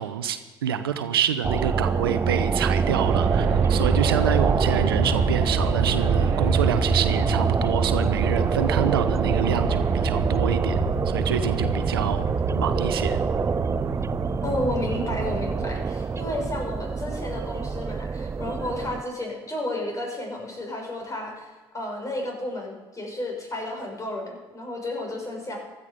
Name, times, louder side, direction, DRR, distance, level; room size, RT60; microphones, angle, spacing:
voice 1, 0.0-10.8 11.1-12.3 12.5-13.2, right 9 dB, 85° right, 11 dB, 0.8 m, -27 dB
sound 1, 1.4-19.0, right 5 dB, 25° right, 0.4 m, -26 dB
Aircraft, 2.9-15.7, right 4 dB, 65° right, 1.6 m, -27 dB
voice 2, 14.4-21.5 21.7-25.6, left 1 dB, 25° left, 1 dB, 6.1 m, -32 dB
16.0 x 12.5 x 5.2 m, 1.3 s
hypercardioid pair, 55°, 12 cm